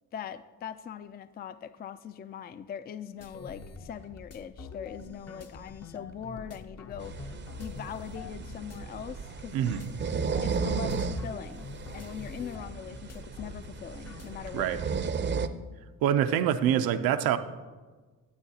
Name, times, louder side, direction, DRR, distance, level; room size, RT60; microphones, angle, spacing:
voice 1, 0.1-9.7 10.4-11.7 11.9-15.1, left 8 dB, 30° left, 13 dB, 0.3 m, -41 dB
sound 1, 3.2-14.9, left 4 dB, 45° left, 0.8 m, -46 dB
sound 2, 7.0-15.5, right 5 dB, 35° right, 0.5 m, -35 dB
voice 2, 9.5-9.9 14.5-14.8 16.0-17.4, right 10 dB, 85° right, 9 dB, 0.6 m, -25 dB
12.0 x 8.4 x 2.8 m, 1.4 s
cardioid pair, 80°, 35 cm